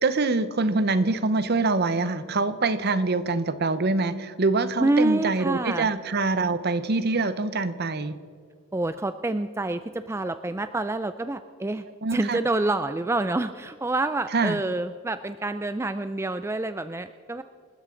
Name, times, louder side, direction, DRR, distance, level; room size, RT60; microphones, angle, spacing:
voice 1, 0.0-8.2 12.0-12.4 14.3-14.6, right 3 dB, 50° right, 13 dB, 0.8 m, -24 dB
voice 2, 4.8-5.9 8.7-11.8 12.1-17.4, right 2 dB, 10° right, 11 dB, 0.3 m, -27 dB
28.0 x 13.5 x 3.8 m, 2.1 s
head